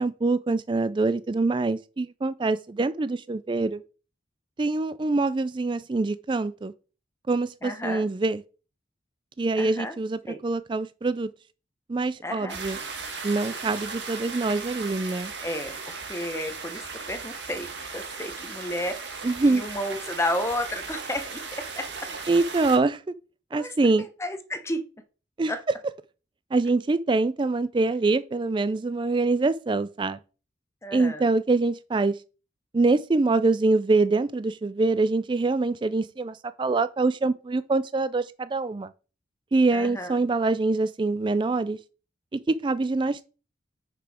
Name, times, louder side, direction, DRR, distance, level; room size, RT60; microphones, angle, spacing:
voice 1, 0.0-3.8 4.6-6.7 7.3-8.4 9.4-11.3 11.9-12.8 13.2-15.3 19.2-19.6 22.3-23.0 23.5-24.1 25.4-25.5 26.5-30.2 30.9-32.2 32.7-38.9 39.5-41.8 42.3-43.3, right 3 dB, 25° right, 0.3 m, -24 dB
voice 2, 7.6-8.0 9.6-10.0 10.3-10.4 12.2-12.6 15.4-21.9 23.5-23.7 24.2-24.8 25.5-25.6 30.8-31.3 39.7-40.1, left 1 dB, 15° left, 0.9 m, -32 dB
sound 1, 12.5-22.8, right 4 dB, 70° right, 1.8 m, -37 dB
6.6 x 5.9 x 4.9 m
head